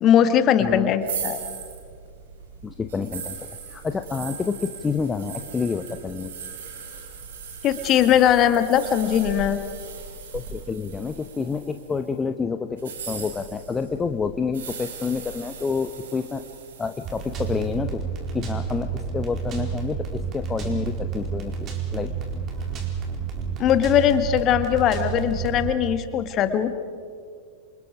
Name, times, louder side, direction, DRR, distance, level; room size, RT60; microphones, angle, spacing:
voice 1, 0.0-1.4 7.6-9.6 23.6-26.7, left 10 dB, 35° left, 10 dB, 1.7 m, -20 dB
voice 2, 0.6-0.9 2.6-6.3 10.3-16.4 16.8-18.0 18.3-22.1 22.5-22.6, left 5 dB, 15° left, 8 dB, 0.9 m, -28 dB
sound 1, 1.0-12.0 12.7-17.6, right 6 dB, 60° right, 5.1 m, -38 dB
sound 2, 17.0-25.7, right 6 dB, 30° right, 4.6 m, -30 dB
28.5 x 27.5 x 5.0 m, 2.2 s
figure-of-eight pair, 90°, 0 cm